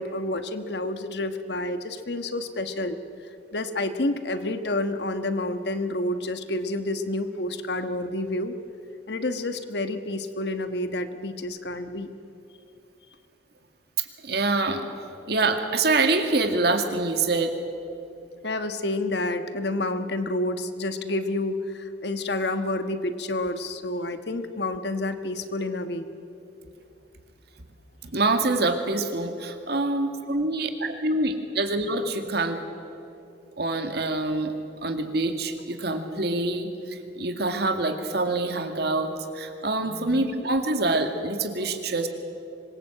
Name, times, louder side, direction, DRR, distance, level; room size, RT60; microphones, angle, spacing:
voice 1, 0.0-3.0 3.5-8.5 9.1-12.1 18.4-26.1 39.9-40.1, left 2 dB, 60° left, 9 dB, 1.4 m, -29 dB
voice 2, 14.0-14.9 15.3-17.5 28.0-32.6 33.6-42.1, right 2 dB, 60° right, 6 dB, 2.1 m, -26 dB
25.5 x 21.5 x 7.9 m, 2.8 s
head